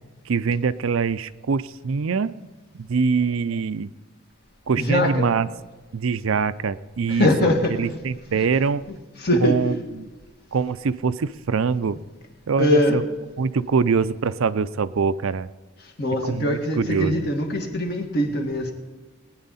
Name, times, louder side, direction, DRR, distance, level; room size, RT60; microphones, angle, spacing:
voice 1, 0.3-2.3 2.8-3.9 4.7-5.5 5.9-7.5 7.8-8.8 9.4-10.1 10.5-12.0 12.5-13.0 13.4-15.5 16.2-17.3, right 5 dB, 70° right, 14 dB, 0.5 m, -24 dB
voice 2, 4.8-5.3 7.1-8.0 8.3-8.4 9.2-9.7 12.6-13.0 15.8-18.7, left 1 dB, 45° left, 2 dB, 1.9 m, -22 dB
20.0 x 9.7 x 4.2 m, 1.3 s
head